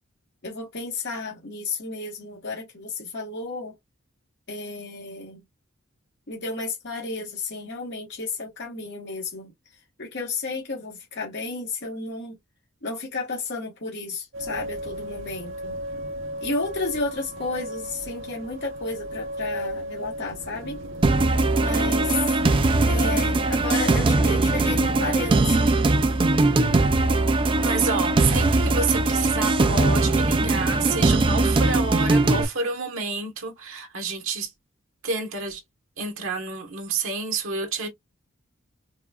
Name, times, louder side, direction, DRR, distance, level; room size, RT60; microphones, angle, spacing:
voice 1, 0.4-3.7 4.5-5.4 6.3-9.5 10.0-12.4 12.8-15.8 16.4-20.8 21.6-22.4 22.8-25.8, left 3 dB, 60° left, 1.3 m, -32 dB
sound 1, 14.3-29.9, equal, 65° right, 0.7 m, -36 dB
sound 2, 21.0-32.4, right 2 dB, 25° right, 0.3 m, -20 dB
voice 2, 23.1-23.6 27.6-34.5 35.0-35.6 36.0-37.9, right 4 dB, 85° right, 1.2 m, -29 dB
4.8 x 2.4 x 2.2 m
head